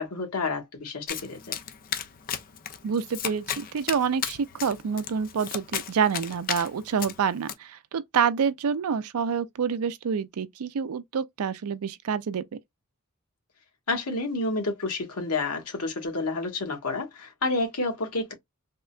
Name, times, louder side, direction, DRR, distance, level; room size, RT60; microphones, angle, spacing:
voice 1, 0.0-1.4 13.9-18.3, left 3 dB, 85° left, 1.2 m, -29 dB
Domestic sounds home sounds, 1.1-7.5, left 9 dB, 40° left, 0.5 m, -35 dB
voice 2, 2.8-12.4, right 6 dB, 75° right, 0.4 m, -27 dB
3.6 x 2.2 x 2.3 m
head